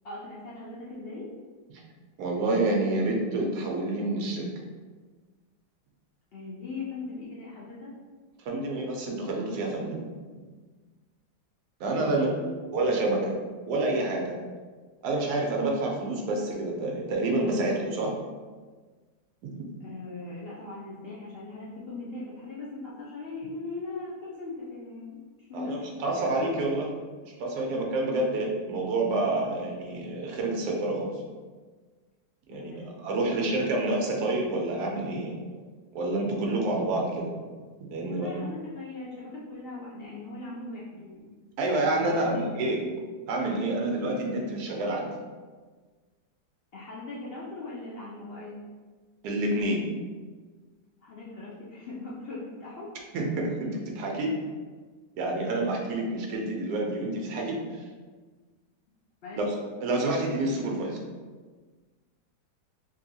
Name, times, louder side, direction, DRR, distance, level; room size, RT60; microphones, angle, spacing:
voice 1, 0.0-1.3 6.3-7.9 12.0-12.6 19.8-26.3 32.5-33.7 38.0-41.2 42.0-42.6 46.7-48.6 51.0-52.9 59.2-59.4, left 3 dB, 90° left, -6 dB, 0.5 m, -40 dB
voice 2, 2.2-4.5 8.5-10.0 11.8-12.3 12.7-13.3 13.7-14.3 15.0-18.1 19.4-19.6 25.5-27.0 27.2-31.1 32.5-35.3 35.9-37.3 37.8-38.3 41.6-42.8 43.3-45.1 49.2-49.8 53.1-54.3 55.2-57.8 59.4-59.5 59.8-61.0, right 2 dB, 75° right, 0 dB, 1.2 m, -28 dB
3.7 x 2.7 x 2.7 m, 1.4 s
omnidirectional pair, 1.7 m